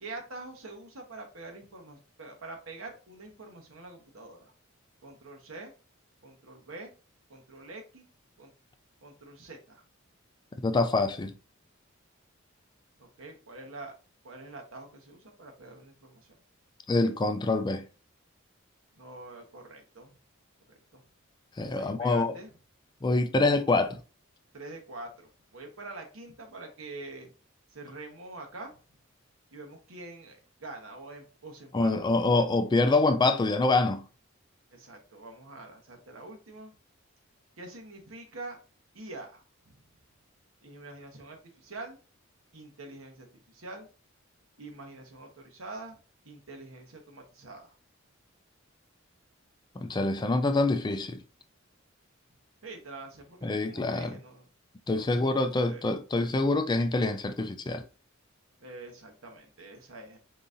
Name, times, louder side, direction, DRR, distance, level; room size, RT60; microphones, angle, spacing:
voice 1, 0.0-4.5 5.0-5.7 6.2-6.9 7.3-8.1 8.4-8.5 9.0-9.8 13.0-13.9 14.2-16.4 18.9-20.1 20.7-21.0 21.7-22.5 24.5-27.3 27.7-28.8 29.5-31.9 34.7-36.7 37.6-38.6 38.9-39.7 40.6-42.0 42.5-43.9 44.6-46.0 46.2-47.7 52.6-54.4 54.9-55.8 58.6-60.2, right 2 dB, 80° right, 1.1 m, -45 dB
voice 2, 10.6-11.3 16.9-17.8 21.6-22.3 23.0-24.0 31.7-34.0 49.8-51.2 53.4-54.1 54.9-57.8, left 2 dB, 20° left, 0.3 m, -25 dB
4.0 x 3.8 x 2.6 m
head